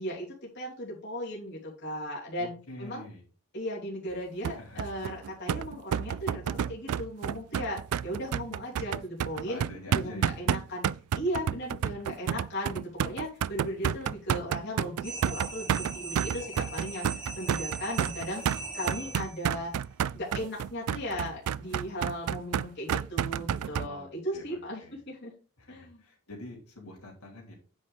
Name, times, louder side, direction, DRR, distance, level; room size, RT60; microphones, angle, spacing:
voice 1, 0.0-3.0 3.5-9.6 9.9-10.9 11.1-18.4 18.7-19.7 20.1-25.3 25.7-26.0, equal, 50° left, -4 dB, 3.0 m, -36 dB
voice 2, 2.4-3.2 4.4-5.0 9.5-10.4 13.8-13.9 18.8-19.2 23.8-24.1 24.3-25.0 25.6-27.5, left 2 dB, 85° left, -3 dB, 3.4 m, -46 dB
sound 1, 4.4-23.9, right 8 dB, 90° right, 0.3 m, -30 dB
sound 2, 15.0-19.5, right 3 dB, 5° right, 2.4 m, -40 dB
9.4 x 5.4 x 3.5 m, 0.37 s
head